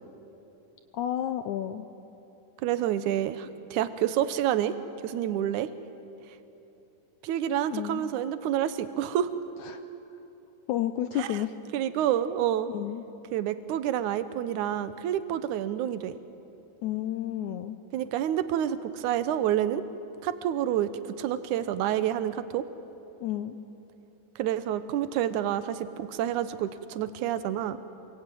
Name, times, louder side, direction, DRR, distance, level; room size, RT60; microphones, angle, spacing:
voice 1, 0.9-1.9 7.7-8.1 9.6-9.8 10.7-11.5 12.7-13.0 16.8-17.8 23.2-23.6, left 11 dB, 75° left, 9 dB, 1.9 m, -31 dB
voice 2, 2.6-4.8 5.0-5.7 7.2-9.3 11.2-11.4 11.7-12.7 13.3-16.2 17.9-19.8 20.2-20.9 21.2-22.6 24.4-27.8, right 11 dB, 70° right, 12 dB, 2.2 m, -28 dB
27.5 x 23.0 x 9.2 m, 2.9 s
omnidirectional pair, 4.1 m